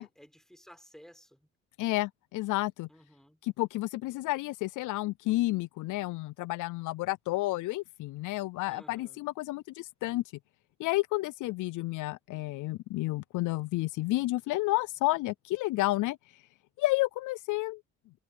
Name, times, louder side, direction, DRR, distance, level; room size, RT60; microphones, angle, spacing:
voice 1, 0.0-1.5 2.9-3.4 8.7-9.2, equal, ahead, 6.1 m, -55 dB
voice 2, 1.8-2.9 3.4-10.2 10.8-16.2 16.8-17.8, left 19 dB, 80° left, 0.5 m, -31 dB
cardioid pair, 90°, 30 cm